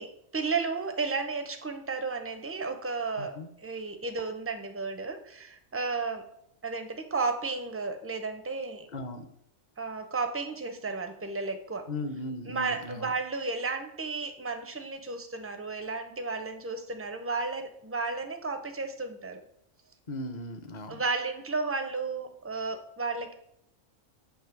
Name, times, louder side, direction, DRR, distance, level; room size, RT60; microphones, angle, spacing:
voice 1, 0.0-6.3 6.6-8.9 9.8-11.9 12.5-19.4 20.9-23.3, right 4 dB, 20° right, 6 dB, 0.3 m, -33 dB
voice 2, 3.2-3.5 8.9-9.3 11.9-13.1 20.1-21.0, left 1 dB, 45° left, 8 dB, 0.7 m, -37 dB
7.2 x 3.1 x 5.9 m, 0.74 s
omnidirectional pair, 1.2 m